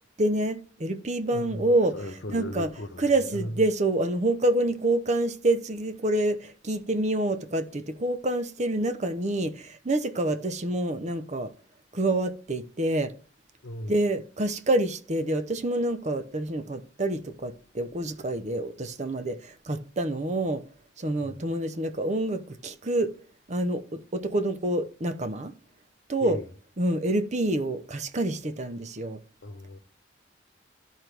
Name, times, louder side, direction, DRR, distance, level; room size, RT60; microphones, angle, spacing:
voice 1, 0.2-1.9 2.3-2.7 3.0-11.5 11.9-13.1 13.9-20.6 21.0-23.1 23.5-25.5 26.1-26.4 26.8-29.2, right 1 dB, 35° right, 0.8 m, -27 dB
voice 2, 1.3-3.6 13.6-13.9 21.2-21.4 26.2-26.4 29.4-29.8, left 1 dB, 70° left, 1.0 m, -37 dB
13.0 x 4.6 x 3.4 m
head